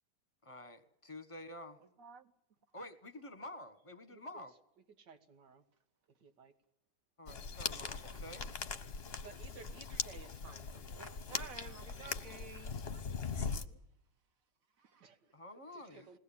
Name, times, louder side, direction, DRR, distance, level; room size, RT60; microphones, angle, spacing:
voice 1, 0.4-1.8 2.7-4.5 7.2-8.5 15.3-16.2, left 1 dB, 20° left, 1.4 m, -49 dB
voice 2, 2.0-2.3 8.0-8.3 11.0-13.8 14.8-15.1, right 5 dB, 55° right, 1.7 m, -53 dB
voice 3, 4.1-4.4 5.0-5.6 6.2-6.5 9.2-12.5 15.0-15.3 15.7-16.2, right 5 dB, 85° right, 2.3 m, -57 dB
sound 1, 7.3-13.7, left 5 dB, 40° left, 1.1 m, -41 dB
21.0 x 18.0 x 8.7 m
omnidirectional pair, 1.8 m